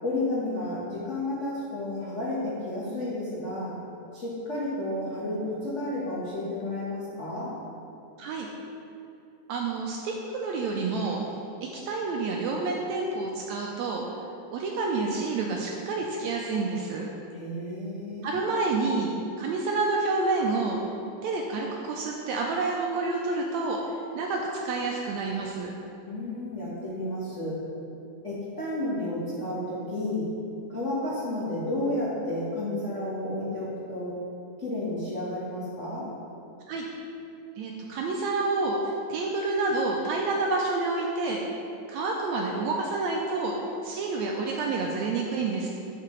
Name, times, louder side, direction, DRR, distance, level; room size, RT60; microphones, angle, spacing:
voice 1, 0.0-3.7 4.1-7.5 17.3-18.3 26.0-27.6 28.2-30.3 30.7-34.1 34.6-36.1, left 1 dB, 75° left, -9 dB, 0.6 m, -31 dB
voice 2, 9.5-11.2 11.6-14.0 14.5-17.1 18.2-19.1 19.4-20.8 21.2-25.7 36.7-36.9 37.6-41.4 41.9-43.5 43.8-45.7, right 3 dB, 80° right, 0 dB, 1.6 m, -28 dB
11.0 x 5.8 x 3.2 m, 2.7 s
omnidirectional pair, 3.7 m